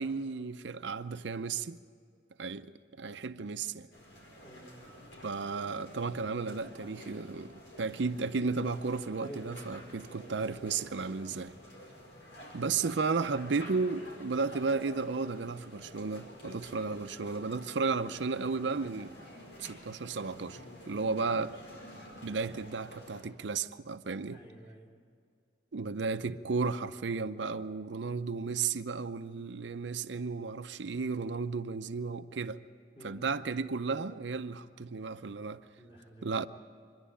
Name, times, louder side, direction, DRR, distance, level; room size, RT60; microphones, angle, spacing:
voice 1, 0.0-1.8 2.4-3.9 5.2-11.5 12.5-19.1 19.6-21.6 22.2-24.4 25.7-32.6 33.0-35.6 36.2-36.5, right 4 dB, 75° right, 0.6 m, -34 dB
sound 1, 3.9-23.2, left 1 dB, 85° left, 5.2 m, -50 dB
voice 2, 4.4-4.9 9.2-10.6 24.3-24.9 32.9-33.2 35.7-36.4, equal, 30° left, 4.6 m, -50 dB
25.0 x 11.0 x 9.9 m
head